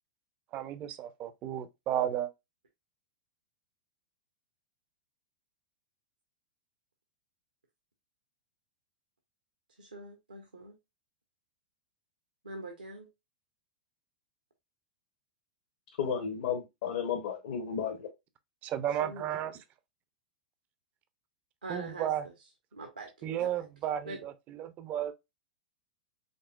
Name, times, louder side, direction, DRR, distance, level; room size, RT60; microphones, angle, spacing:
voice 1, 0.5-2.3 18.6-19.6 21.7-22.3 23.2-25.1, right 11 dB, 30° right, 0.6 m, -33 dB
voice 2, 9.8-10.8 12.4-13.1 19.0-19.3 21.6-22.1 22.7-23.7 24.0-24.2, right 2 dB, 75° right, 1.1 m, -43 dB
voice 3, 16.0-18.1, left 7 dB, 55° left, 1.0 m, -33 dB
5.3 x 3.5 x 2.3 m
figure-of-eight pair, 95°, 5 cm